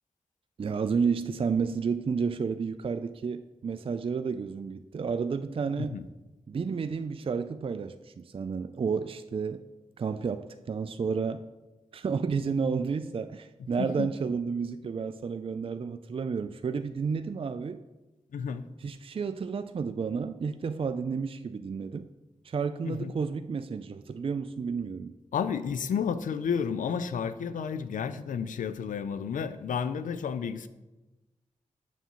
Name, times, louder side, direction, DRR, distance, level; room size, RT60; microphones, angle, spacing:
voice 1, 0.6-6.0 6.5-9.6 10.0-11.4 11.9-17.8 18.8-22.1 22.4-25.2, right 5 dB, 45° right, 10 dB, 0.3 m, -31 dB
voice 2, 18.3-18.7 22.8-23.1 25.3-30.7, left 7 dB, 85° left, 13 dB, 0.4 m, -31 dB
7.1 x 6.7 x 3.0 m, 1.1 s
cardioid pair, 40°, 13 cm